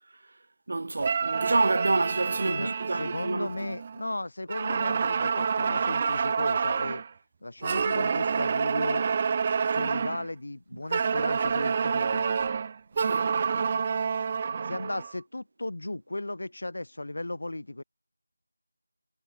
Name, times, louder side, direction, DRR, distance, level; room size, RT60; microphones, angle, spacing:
voice 1, 0.7-3.5 13.0-13.8 14.5-14.7, right 2 dB, 45° right, 2.9 m, -29 dB
sound 1, 1.0-4.1 4.5-7.1 7.6-10.3 10.9-15.1, right 6 dB, 20° right, 0.4 m, -28 dB
voice 2, 2.2-7.0 7.4-9.0 9.7-12.2 14.6-17.8, left 2 dB, 65° left, 6.0 m, -35 dB
figure-of-eight pair, 175°, 0 cm